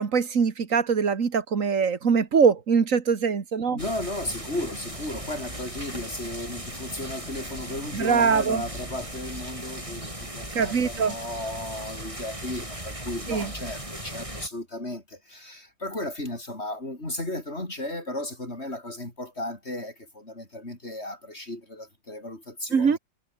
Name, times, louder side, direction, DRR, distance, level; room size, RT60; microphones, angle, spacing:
voice 1, 0.0-3.8 7.9-8.6 10.5-11.1 13.3-13.5 22.7-23.0, right 6 dB, 85° right, 2.1 m, -22 dB
voice 2, 3.7-23.0, left 1 dB, 55° left, 6.1 m, -35 dB
sound 1, 3.8-14.5, right 1 dB, 25° right, 7.5 m, -37 dB
omnidirectional pair, 1.3 m